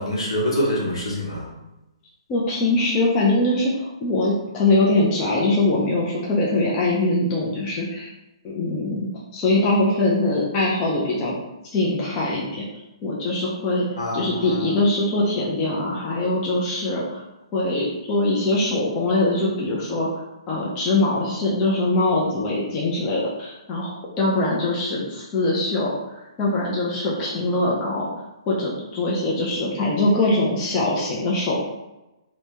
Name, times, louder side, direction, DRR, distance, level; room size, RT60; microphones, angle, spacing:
voice 1, 0.0-1.5 14.0-14.7, equal, 65° left, -4 dB, 1.4 m, -25 dB
voice 2, 2.3-8.1 8.4-9.1 9.3-11.4 11.6-13.9 14.1-17.2 17.5-25.9 26.4-28.1 28.5-31.6, left 2 dB, 20° left, -4 dB, 0.5 m, -22 dB
2.8 x 2.7 x 3.3 m, 0.99 s
hypercardioid pair, 155°, 3 cm